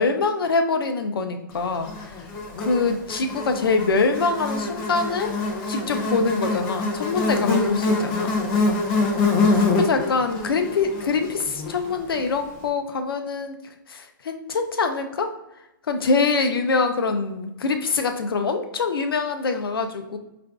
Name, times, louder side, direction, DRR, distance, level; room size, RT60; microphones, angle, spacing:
voice 1, 0.0-2.1 2.6-5.3 5.7-8.4 9.5-13.5 13.9-15.3 15.9-20.2, left 4 dB, 85° left, 7 dB, 0.5 m, -24 dB
Buzz, 1.9-12.3, left 3 dB, 30° left, 0.6 m, -25 dB
4.6 x 2.5 x 2.3 m, 0.90 s
hypercardioid pair, 145°, 12 cm